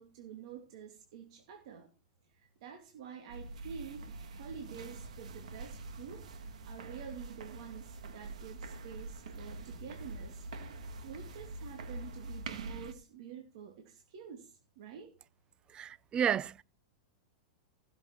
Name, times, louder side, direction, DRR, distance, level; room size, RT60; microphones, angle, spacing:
voice 1, 0.0-1.9 2.3-4.1 4.4-10.5 11.0-15.1, right 8 dB, 60° right, 2.7 m, -48 dB
sound 1, 3.3-12.9, right 2 dB, 80° right, 1.8 m, -45 dB
voice 2, 15.7-16.6, right 8 dB, 25° right, 0.6 m, -31 dB
15.5 x 7.2 x 4.6 m
hypercardioid pair, 120°, 4 cm